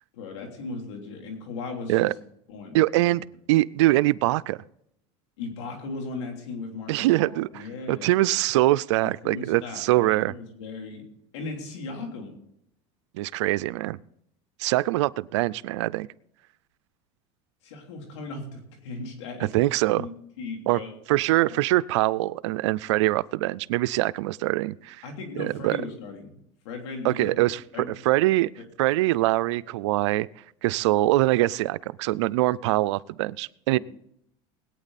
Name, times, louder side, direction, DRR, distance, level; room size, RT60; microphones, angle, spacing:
voice 1, 0.1-2.1 2.5-3.0 5.4-8.1 9.0-11.0 11.3-12.3 17.6-19.5 20.0-20.1 20.4-20.9 25.0-26.4 26.7-27.3 27.7-27.9 28.6-28.7 33.7-33.8, left 3 dB, 90° left, 2 dB, 3.4 m, -37 dB
voice 2, 2.7-4.6 6.9-10.3 13.1-14.0 14.6-16.1 19.5-20.1 20.7-20.8 21.1-25.0 25.4-25.8 27.0-27.6 28.1-28.5 28.8-30.3 30.6-33.8, right 17 dB, 85° right, 18 dB, 0.4 m, -23 dB
21.0 x 9.0 x 4.1 m, 0.75 s
supercardioid pair, 115°, 15 cm